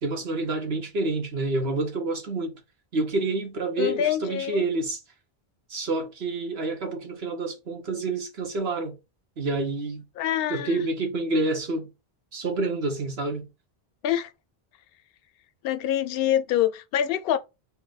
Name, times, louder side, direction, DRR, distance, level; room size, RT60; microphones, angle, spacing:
voice 1, 0.0-2.6 2.9-5.0 5.7-9.0 9.4-10.0 10.5-11.9 12.3-13.5, right 2 dB, 75° right, 1.4 m, -28 dB
voice 2, 3.8-4.6 10.2-10.8 14.0-14.3 15.6-17.4, left 11 dB, 70° left, 0.7 m, -25 dB
4.3 x 2.2 x 3.9 m
omnidirectional pair, 1.1 m